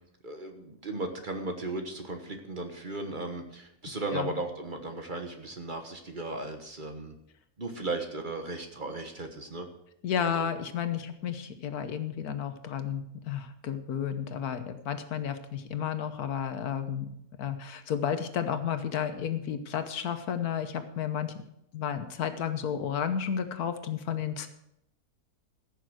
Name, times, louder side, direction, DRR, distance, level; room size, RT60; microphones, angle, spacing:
voice 1, 0.2-7.1 7.6-9.7 10.2-10.5, right 2 dB, 35° right, 5 dB, 1.3 m, -36 dB
voice 2, 10.0-17.1 17.4-21.3 21.7-24.5, left 8 dB, 80° left, 9 dB, 1.5 m, -32 dB
15.0 x 6.9 x 6.2 m, 0.80 s
omnidirectional pair, 1.6 m